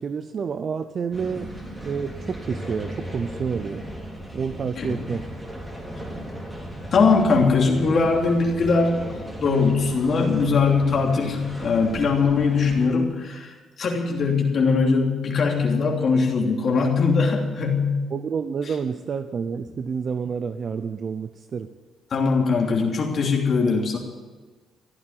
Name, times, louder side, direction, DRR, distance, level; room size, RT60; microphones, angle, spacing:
voice 1, 0.0-1.5 1.8-3.8 4.3-5.2 18.1-21.7, right 6 dB, 50° right, 10 dB, 0.7 m, -29 dB
sound 1, 1.1-12.9, right 1 dB, 15° right, 3.9 m, -37 dB
voice 2, 4.8-5.1 6.9-9.0 9.4-18.0 22.1-24.0, left 4 dB, 55° left, 0 dB, 3.1 m, -21 dB
15.0 x 9.0 x 9.5 m, 1.3 s
cardioid pair, 90°, 0 cm